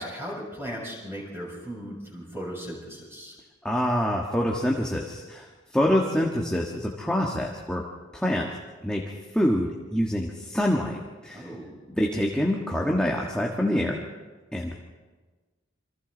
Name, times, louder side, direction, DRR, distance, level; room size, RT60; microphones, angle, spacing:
voice 1, 0.0-3.4 11.3-11.7, equal, 15° right, -3 dB, 6.9 m, -37 dB
voice 2, 3.6-7.8 8.1-8.5 8.8-9.0 9.3-11.5 11.9-14.0 14.5-14.8, equal, 5° left, -2 dB, 1.7 m, -26 dB
27.5 x 25.5 x 4.1 m, 1.3 s
head